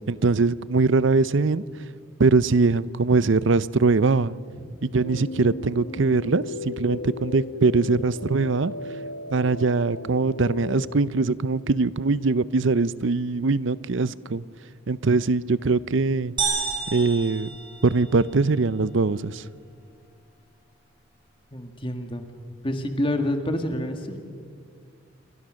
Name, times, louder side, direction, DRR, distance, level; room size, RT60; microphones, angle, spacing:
voice 1, 0.1-1.6 2.2-4.4 4.8-8.7 9.3-14.4 14.9-16.3 16.9-17.6 17.8-19.4, right 3 dB, 65° right, 18 dB, 0.6 m, -22 dB
sound 1, 5.0-11.0, left 3 dB, 65° left, 1.1 m, -36 dB
sound 2, 16.4-18.3, right 5 dB, 25° right, 5.6 m, -30 dB
voice 2, 21.5-22.3 22.6-24.2, left 1 dB, 25° left, 6 dB, 1.8 m, -28 dB
28.5 x 23.5 x 6.4 m, 2.2 s
head